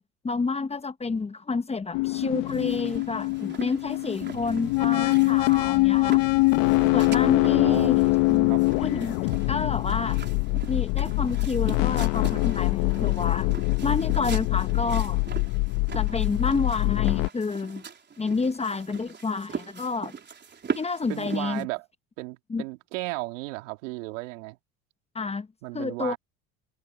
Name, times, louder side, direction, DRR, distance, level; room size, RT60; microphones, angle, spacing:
voice 1, 0.2-6.2 6.9-8.0 8.3-9.2 9.5-10.2 10.7-13.5 13.8-15.2 15.9-17.8 18.2-20.1 20.7-21.7 22.5-22.6 25.1-25.5 25.7-26.2, left 4 dB, 15° left, 1.0 m, -29 dB
sound 1, 1.9-17.3, left 24 dB, 75° left, 1.2 m, -24 dB
sound 2, 2.5-21.6, right 6 dB, 30° right, 4.1 m, -41 dB
voice 2, 7.2-8.0 8.5-8.6 21.1-21.8 22.2-24.6 25.6-26.2, right 23 dB, 85° right, 2.6 m, -35 dB
supercardioid pair, 95°, 37 cm